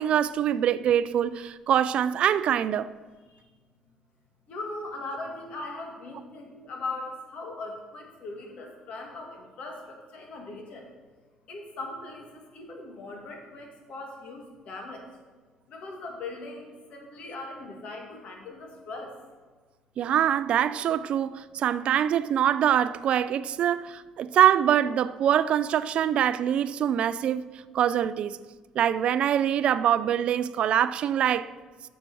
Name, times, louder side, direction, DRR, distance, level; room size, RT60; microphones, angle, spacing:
voice 1, 0.0-2.9 20.0-27.5 27.7-28.4 28.8-31.5, right 10 dB, 60° right, 0.3 m, -24 dB
voice 2, 4.5-10.8 11.5-15.0 15.7-19.1, left 2 dB, 60° left, 2.0 m, -39 dB
7.5 x 6.4 x 6.1 m
cardioid pair, 115°, 2 cm